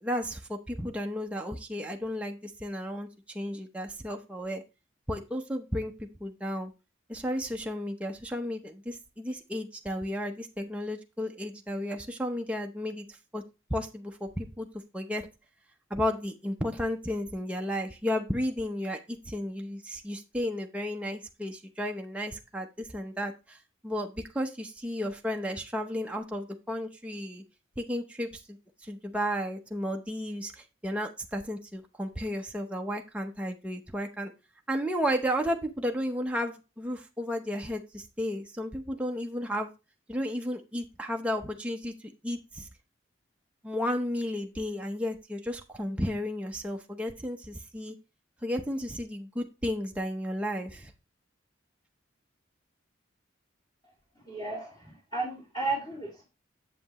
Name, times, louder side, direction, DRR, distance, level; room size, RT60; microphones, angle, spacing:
voice 1, 0.0-4.6 5.1-6.7 7.1-13.1 13.3-13.4 13.7-14.7 14.9-15.3 15.9-23.6 23.8-27.4 27.8-28.6 28.8-34.3 34.7-39.7 40.1-42.7 43.6-48.0 48.4-50.9, equal, 5° right, 2 dB, 0.7 m, -33 dB
voice 2, 54.2-56.2, right 3 dB, 20° left, -5 dB, 2.5 m, -34 dB
7.7 x 7.6 x 3.0 m, 0.28 s
head